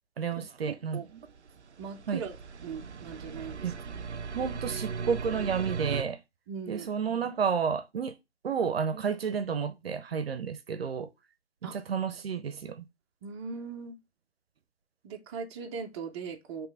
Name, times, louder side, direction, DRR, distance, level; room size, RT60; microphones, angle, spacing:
voice 1, 0.2-1.0 2.1-2.2 3.6-3.7 4.1-6.2 6.7-8.1 8.4-11.1 11.6-12.8, right 6 dB, 60° right, 0.8 m, -31 dB
voice 2, 0.7-1.1 1.8-2.3 2.6-3.7 6.5-6.9 11.6-11.8 13.2-14.0 15.0-16.7, right 5 dB, 25° right, 0.8 m, -39 dB
sound 1, 1.3-6.0, right 5 dB, 90° right, 0.6 m, -37 dB
5.9 x 3.3 x 4.7 m
figure-of-eight pair, 130°, 33 cm